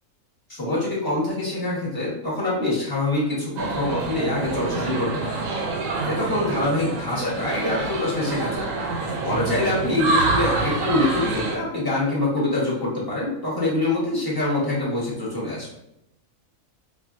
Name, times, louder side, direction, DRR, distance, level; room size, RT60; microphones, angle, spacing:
voice 1, 0.5-5.4 6.0-8.7 9.2-15.7, left 2 dB, 20° left, -6 dB, 0.9 m, -25 dB
sound 1, 3.6-11.5, right 3 dB, 75° right, 1.0 m, -26 dB
4.4 x 2.3 x 2.4 m, 0.83 s
omnidirectional pair, 1.5 m